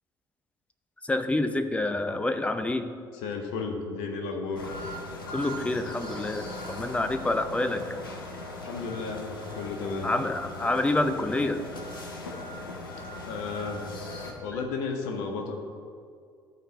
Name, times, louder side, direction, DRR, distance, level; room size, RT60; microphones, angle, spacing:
voice 1, 1.0-2.9 5.3-7.9 10.0-11.6, left 2 dB, 10° left, 9 dB, 0.6 m, -27 dB
voice 2, 3.2-4.6 8.6-10.1 13.3-13.9 14.4-15.7, left 4 dB, 65° left, 3 dB, 1.0 m, -33 dB
sound 1, 4.5-14.3, left 2 dB, 80° left, 0.8 m, -39 dB
13.0 x 4.4 x 4.3 m, 2.2 s
figure-of-eight pair, 50°, 11 cm